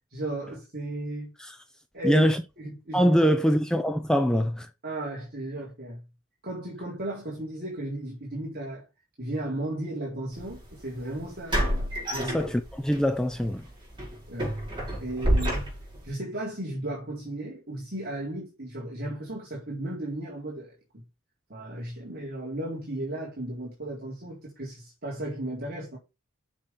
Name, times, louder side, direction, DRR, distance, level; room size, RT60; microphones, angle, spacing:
voice 1, 0.1-1.3 1.9-2.3 2.6-3.1 4.8-6.0 6.4-8.9 9.2-11.6 12.1-12.4 14.3-14.5 15.0-15.6 16.0-21.0 21.5-26.0, right 1 dB, 45° right, 3.8 m, -35 dB
voice 2, 2.0-2.4 2.9-4.7 12.2-13.7, equal, 5° left, 0.7 m, -23 dB
sound 1, 10.4-10.5 11.5-13.0 13.4-13.5 14.0-16.1, equal, 20° right, 5.4 m, -28 dB
7.3 x 6.4 x 5.6 m
head